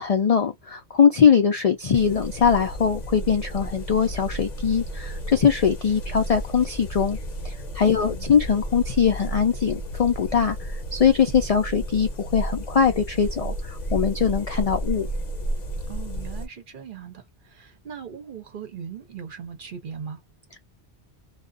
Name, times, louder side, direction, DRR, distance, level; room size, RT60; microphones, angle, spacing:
voice 1, 0.0-7.2 7.4-15.1, left 7 dB, 65° left, 0.3 m, -21 dB
sound 1, 1.9-16.5, right 1 dB, 45° left, 0.8 m, -32 dB
voice 2, 7.8-8.3 15.9-20.2, right 7 dB, 55° right, 0.8 m, -39 dB
2.3 x 2.2 x 2.5 m
omnidirectional pair, 1.1 m